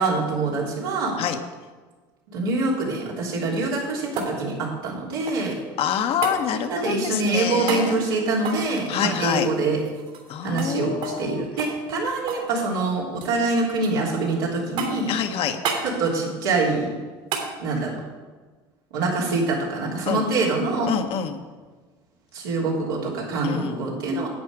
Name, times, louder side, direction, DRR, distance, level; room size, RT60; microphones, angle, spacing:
voice 1, 0.0-1.2 2.3-5.6 6.7-9.8 10.4-15.1 15.8-16.9 17.6-18.0 18.9-20.9 22.3-24.3, right 3 dB, 85° right, -3 dB, 3.1 m, -25 dB
sound 1, 3.5-5.6 6.2-6.4 7.6-7.9 8.4-10.3 10.6-10.7 11.0-11.2 11.6-12.5 12.8-13.4 13.8-14.3 14.8-15.1 15.6-15.9 17.3-17.5 19.9-20.0, right 5 dB, 65° right, 3.2 m, -32 dB
voice 2, 5.8-8.0 8.9-9.5 10.3-11.4 15.1-15.6 20.1-20.2 20.8-21.4 23.4-23.8, left 8 dB, 55° left, 7 dB, 1.1 m, -26 dB
10.5 x 8.4 x 4.9 m, 1.4 s
hypercardioid pair, 80°, 12 cm